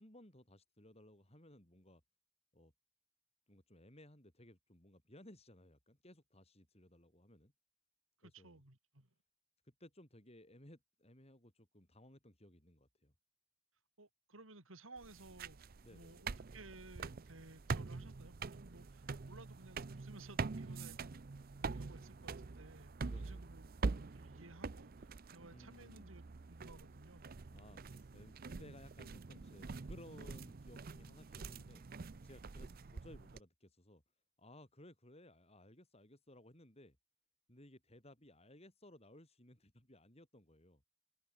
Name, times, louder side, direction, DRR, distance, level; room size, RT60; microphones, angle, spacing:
voice 1, 0.0-2.0 2.5-2.7 3.5-7.5 8.2-8.6 9.6-13.1 15.8-16.2 23.1-23.5 25.5-26.2 27.5-31.9 32.2-34.0 34.4-37.0 37.5-40.8, left 1 dB, 30° left, 5.7 m, -60 dB
voice 2, 8.2-9.1 14.0-15.6 15.9-21.2 21.6-27.3, right 2 dB, 85° right, 4.6 m, -58 dB
sound 1, 15.0-33.4, right 4 dB, 45° right, 0.6 m, -45 dB
head